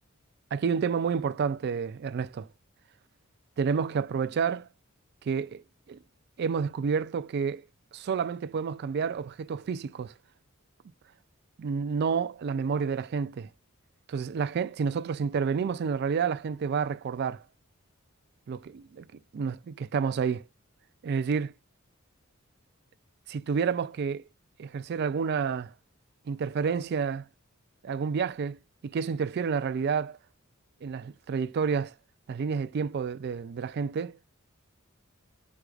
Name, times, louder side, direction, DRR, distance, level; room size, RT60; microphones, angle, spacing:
voice 1, 0.5-2.5 3.6-4.7 5.2-6.0 6.4-7.6 7.9-10.1 11.6-13.5 14.1-17.4 18.5-19.1 19.3-20.4 21.0-21.5 23.3-24.2 24.6-25.7 26.3-27.3 27.8-30.2 30.8-31.9 32.3-34.2, right 6 dB, 50° right, 0.3 m, -29 dB
4.5 x 2.4 x 2.3 m
head